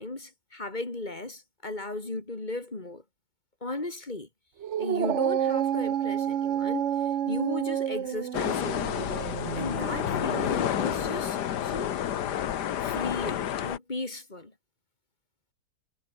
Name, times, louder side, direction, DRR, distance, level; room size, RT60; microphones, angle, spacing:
voice 1, 0.0-3.0 3.6-4.3 4.8-9.1 9.6-12.0 12.8-14.5, left 2 dB, 25° left, 2.6 m, -36 dB
Dog, 4.6-11.2, right 10 dB, 55° right, 0.9 m, -30 dB
sound 1, 8.3-13.8, left 10 dB, 70° left, 1.6 m, -30 dB
omnidirectional pair, 1.9 m